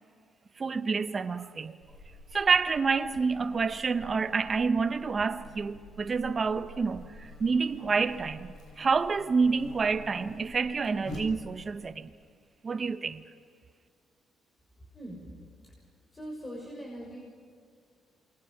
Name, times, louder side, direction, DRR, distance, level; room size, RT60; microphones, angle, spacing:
voice 1, 0.6-1.8 2.3-12.1 12.6-13.2, right 4 dB, 35° right, 1.1 m, -28 dB
Buzz, 1.8-11.8, left 1 dB, 70° left, 7.4 m, -48 dB
voice 2, 14.8-15.3 16.1-17.2, equal, 25° left, 6.6 m, -41 dB
27.5 x 23.0 x 6.0 m
cardioid pair, 90°, 0 cm